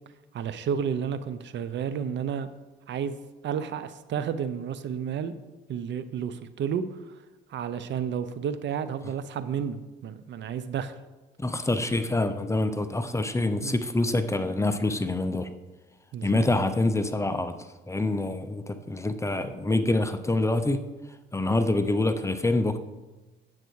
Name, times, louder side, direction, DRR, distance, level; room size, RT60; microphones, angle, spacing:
voice 1, 0.3-2.5 2.9-5.3 5.7-6.8 7.5-11.0 13.6-13.7 16.1-16.5, right 7 dB, 65° right, 13 dB, 0.7 m, -31 dB
voice 2, 11.4-15.5 16.2-17.6 17.9-20.8 21.3-22.8, left 2 dB, 15° left, 10 dB, 0.7 m, -26 dB
9.6 x 7.6 x 4.7 m, 1.1 s
cardioid pair, 90°, 20 cm